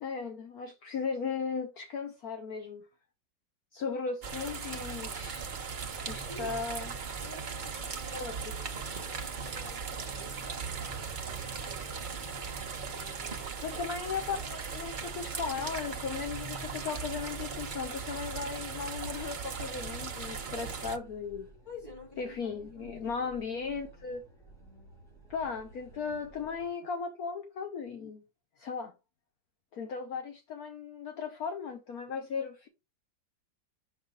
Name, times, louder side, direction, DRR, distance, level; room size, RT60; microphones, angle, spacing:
voice 1, 0.0-2.8 3.7-5.5 6.1-7.0 8.1-8.4 13.6-21.5 22.2-24.2 25.3-28.2 28.6-28.9 29.7-32.7, left 5 dB, 60° left, 1.3 m, -36 dB
sound 1, 4.2-21.0, right 5 dB, 40° right, 0.7 m, -38 dB
voice 2, 6.2-6.8 7.2-13.8 21.7-23.3 23.7-23.9, left 1 dB, 10° left, 3.6 m, -51 dB
sound 2, 17.2-26.7, right 2 dB, 45° left, 5.2 m, -56 dB
6.4 x 5.7 x 3.7 m
omnidirectional pair, 1.9 m